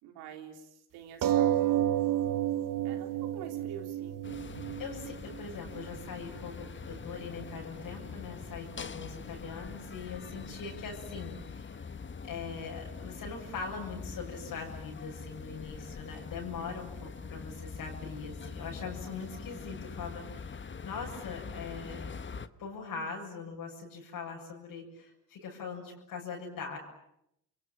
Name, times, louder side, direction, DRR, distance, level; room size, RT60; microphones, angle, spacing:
voice 1, 0.0-1.7 2.8-4.2, right 8 dB, 80° right, 4 dB, 3.7 m, -46 dB
sound 1, 1.2-6.2 7.0-7.1 7.4-7.5, right 12 dB, 60° right, 1.2 m, -30 dB
sound 2, 4.2-22.5, left 5 dB, 30° left, 1.4 m, -44 dB
voice 2, 4.8-11.9 12.2-22.2 22.6-26.8, left 5 dB, 65° left, -2 dB, 7.5 m, -41 dB
29.0 x 23.0 x 8.9 m, 0.80 s
supercardioid pair, 65°, 37 cm